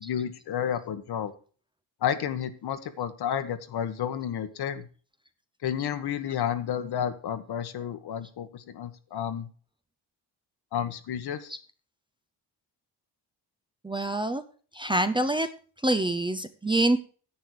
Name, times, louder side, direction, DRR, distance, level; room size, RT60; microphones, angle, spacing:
voice 1, 0.0-1.3 2.0-4.8 5.6-9.5 10.7-11.5, left 9 dB, 65° left, 10 dB, 1.4 m, -31 dB
voice 2, 13.8-14.4 14.7-15.5 15.8-17.0, right 1 dB, 10° right, 9 dB, 0.6 m, -25 dB
10.5 x 8.7 x 4.8 m, 0.39 s
cardioid pair, 140°, 41 cm